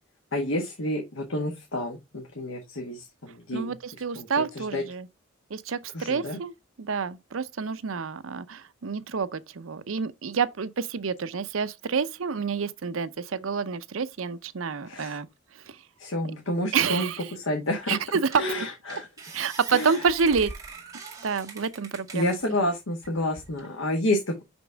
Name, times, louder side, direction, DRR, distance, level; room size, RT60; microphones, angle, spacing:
voice 1, 0.3-3.7 4.1-4.3 4.5-4.8 5.9-6.4 14.8-15.2 16.0-18.0 18.3-19.1 19.7-20.0 22.1-24.4, left 1 dB, 90° left, 1.5 m, -29 dB
voice 2, 3.5-5.1 5.5-6.5 6.8-15.3 15.7-15.8 16.7-17.2 17.9-18.4 19.3-20.5 21.2-22.3, right 5 dB, 90° right, 0.6 m, -28 dB
sound 1, 17.7-17.8 18.3-18.6 18.9-22.5 23.0-23.7, right 4 dB, 20° right, 2.0 m, -43 dB
6.0 x 5.2 x 3.4 m
head